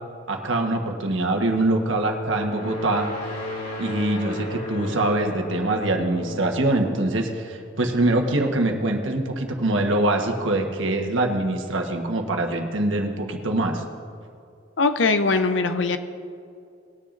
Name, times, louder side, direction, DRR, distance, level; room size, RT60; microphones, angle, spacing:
voice 1, 0.3-3.1 3.8-13.8, right 2 dB, 80° right, 3 dB, 1.3 m, -24 dB
sound 1, 1.5-8.1, left 2 dB, 50° left, 3.3 m, -35 dB
voice 2, 14.8-16.0, left 3 dB, 70° left, 9 dB, 0.7 m, -21 dB
20.0 x 10.0 x 2.6 m, 2.5 s
head